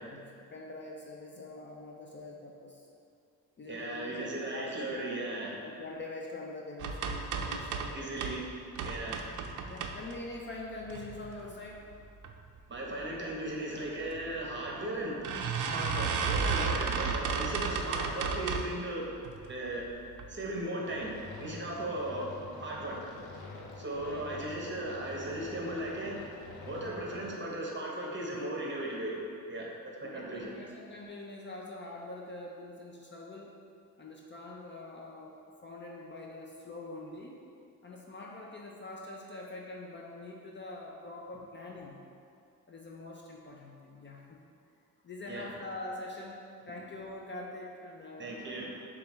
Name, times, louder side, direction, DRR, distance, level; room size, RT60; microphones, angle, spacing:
voice 1, 0.0-2.9 3.6-5.3 5.6-8.2 9.7-11.8 23.9-24.4 30.0-33.6 34.0-35.4 35.6-37.4 37.8-42.0 42.7-44.4 45.0-46.4 46.7-48.4, left 2 dB, 35° left, -2 dB, 0.4 m, -44 dB
voice 2, 3.7-5.5 7.9-8.5 8.8-9.3 12.7-15.3 15.6-19.1 19.5-19.9 20.3-22.3 22.6-23.0 23.8-26.3 26.7-29.2 29.5-29.7 30.0-30.5 45.3-45.4 48.2-48.8, right 1 dB, 30° right, -3 dB, 0.9 m, -37 dB
sound 1, 6.8-8.4 8.7-10.4 10.8-11.5 11.9-12.3 12.6-12.7 13.0-13.1 14.1-14.2 14.6-14.7 15.2-18.8 19.2-19.7 20.1-20.3 20.6-20.7, right 5 dB, 60° right, 0.5 m, -33 dB
sound 2, 20.8-27.3, left 3 dB, 80° left, 0.6 m, -47 dB
6.6 x 2.4 x 3.0 m, 2.4 s
cardioid pair, 90°, 36 cm